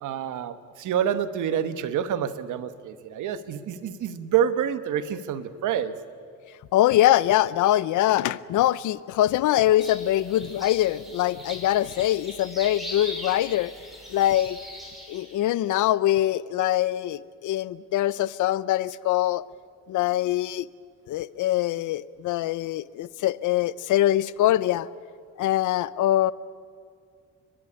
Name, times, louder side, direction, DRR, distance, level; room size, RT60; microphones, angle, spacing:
voice 1, 0.0-5.9, right 9 dB, 80° right, 11 dB, 1.3 m, -27 dB
voice 2, 6.7-13.7 14.1-14.6 15.1-19.4 19.9-20.7 21.1-24.9 25.4-26.3, left 13 dB, 80° left, 18 dB, 0.7 m, -23 dB
sound 1, 9.8-15.5, left 1 dB, ahead, 6.7 m, -40 dB
30.0 x 11.5 x 9.9 m, 2.2 s
cardioid pair, 90°, 30 cm